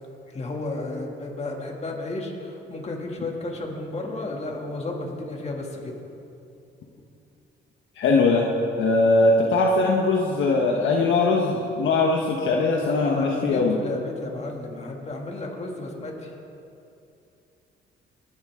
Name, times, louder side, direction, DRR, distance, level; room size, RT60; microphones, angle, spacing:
voice 1, 0.3-5.9 12.8-16.3, left 2 dB, 35° left, 0 dB, 2.5 m, -32 dB
voice 2, 8.0-8.5 8.8-13.7, left 3 dB, 75° left, -1 dB, 1.2 m, -21 dB
20.5 x 10.0 x 3.7 m, 2.7 s
cardioid pair, 90°, 20 cm